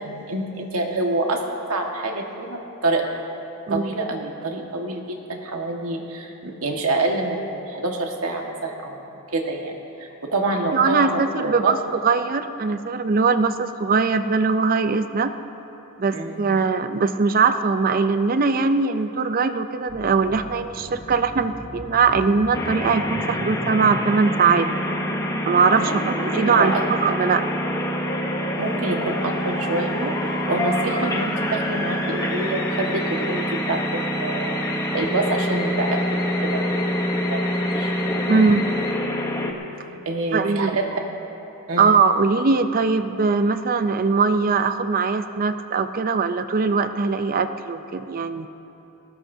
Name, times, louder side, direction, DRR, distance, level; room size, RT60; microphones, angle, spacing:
voice 1, 0.0-1.4 1.7-3.1 3.7-9.0 9.3-9.7 10.0-11.7 16.1-16.4 25.8-26.1 26.5-26.8 28.6-30.1 30.5-34.5 34.9-36.0 36.4-36.7 37.3-37.4 37.7-37.9 40.0-40.8 41.7-41.9, right 2 dB, 75° right, 1 dB, 1.6 m, -26 dB
voice 2, 10.7-11.8 12.0-15.3 16.0-24.7 25.5-27.4 38.3-38.7 40.3-40.8 41.8-48.5, right 4 dB, 40° right, 10 dB, 0.5 m, -21 dB
Musical instrument, 19.9-38.9, left 2 dB, 45° left, 1.5 m, -35 dB
sound 1, 22.5-39.5, equal, 15° left, 0.9 m, -26 dB
20.0 x 18.0 x 2.7 m, 3.0 s
head